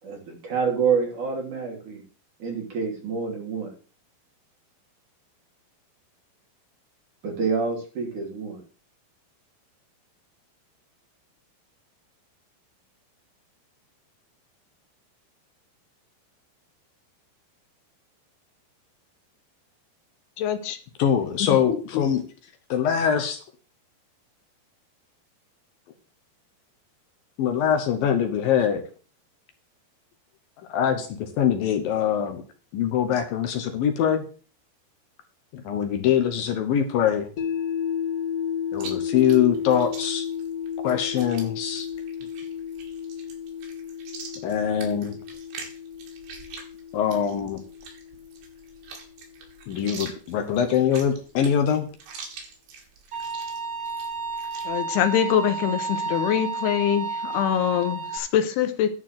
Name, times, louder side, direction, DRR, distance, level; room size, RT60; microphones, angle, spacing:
voice 1, 0.0-2.0 2.4-3.7 7.2-8.6, right 5 dB, 50° right, -1 dB, 4.2 m, -27 dB
voice 2, 20.4-20.8 21.9-22.0 54.7-58.9, left 9 dB, 85° left, 9 dB, 3.1 m, -24 dB
voice 3, 21.0-22.2 22.7-23.4 27.4-28.8 30.7-32.4 32.7-34.3 35.5-37.3 38.7-40.3 40.8-41.9 44.4-45.2 46.9-47.6 49.7-51.9, left 8 dB, 70° left, 7 dB, 2.6 m, -23 dB
sound 1, 37.4-49.5, left 8 dB, 50° left, 2.0 m, -33 dB
Chewing mastication, 38.7-54.7, right 5 dB, 85° right, 4.3 m, -44 dB
Bowed string instrument, 53.1-58.2, right 4 dB, 30° right, 2.1 m, -31 dB
11.0 x 4.4 x 7.5 m, 0.39 s
omnidirectional pair, 4.6 m